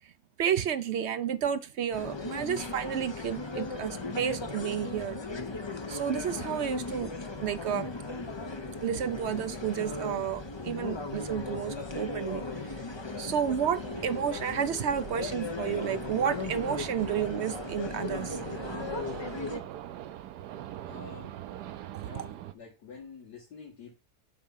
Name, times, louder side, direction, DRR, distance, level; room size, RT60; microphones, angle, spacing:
voice 1, 0.4-5.2 5.9-7.1 7.4-7.9 8.8-12.4 13.2-18.4, right 8 dB, 65° right, 0.7 m, -31 dB
sound 1, 1.9-19.6, left 3 dB, 30° left, 0.5 m, -37 dB
sound 2, 3.6-22.5, right 12 dB, 85° right, 1.2 m, -46 dB
voice 2, 20.9-21.4 22.0-23.9, left 4 dB, 85° left, 2.9 m, -47 dB
8.1 x 3.6 x 5.6 m
omnidirectional pair, 1.7 m